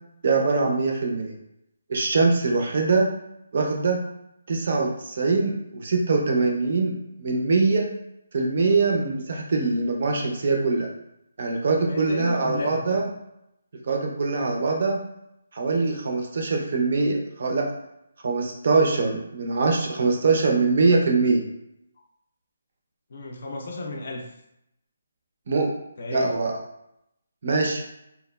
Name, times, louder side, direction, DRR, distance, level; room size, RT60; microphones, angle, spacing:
voice 1, 0.2-1.3 1.9-3.1 3.5-4.0 4.5-7.9 8.3-10.9 11.4-13.1 13.9-15.0 15.5-17.7 18.2-21.4 25.5-25.7 26.1-26.5 27.4-27.8, right 3 dB, 40° right, 1 dB, 0.4 m, -23 dB
voice 2, 11.9-12.8 23.1-24.3 26.0-26.4, left 3 dB, 40° left, 1 dB, 0.4 m, -33 dB
2.8 x 2.3 x 2.2 m, 0.82 s
hypercardioid pair, 175°, 0 cm